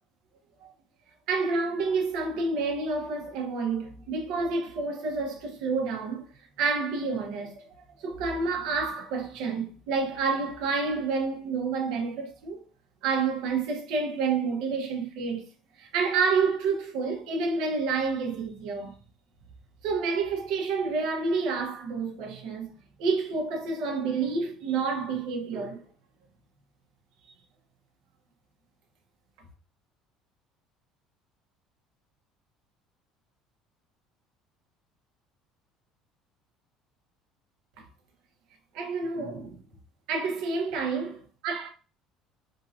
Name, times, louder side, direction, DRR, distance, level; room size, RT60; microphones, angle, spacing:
voice 1, 1.3-6.2 6.6-12.6 13.0-15.4 15.8-18.9 19.8-22.7 23.0-25.8 37.8-37.9 38.7-39.6 40.1-41.2 41.4-41.7, right 4 dB, 65° right, 1.2 m, -29 dB
3.8 x 2.8 x 2.8 m
cardioid pair, 175°, 0 cm